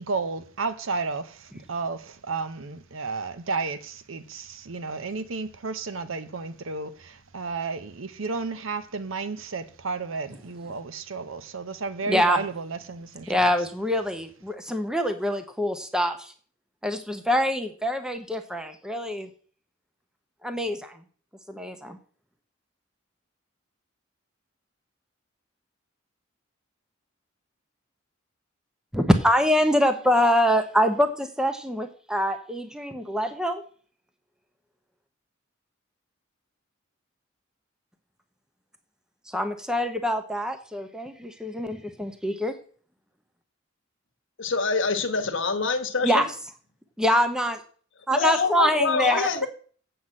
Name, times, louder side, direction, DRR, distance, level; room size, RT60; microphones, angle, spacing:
voice 1, 0.0-13.5, right 4 dB, 80° right, 0.8 m, -32 dB
voice 2, 12.1-12.4 13.3-16.3 16.8-19.3 20.4-21.0 21.5-22.0 28.9-33.6 39.3-42.6 46.0-46.3 47.0-47.6 48.1-49.3, equal, 5° right, 0.9 m, -24 dB
voice 3, 44.4-46.3 48.1-49.5, left 4 dB, 65° left, 1.3 m, -25 dB
7.9 x 5.5 x 7.7 m
head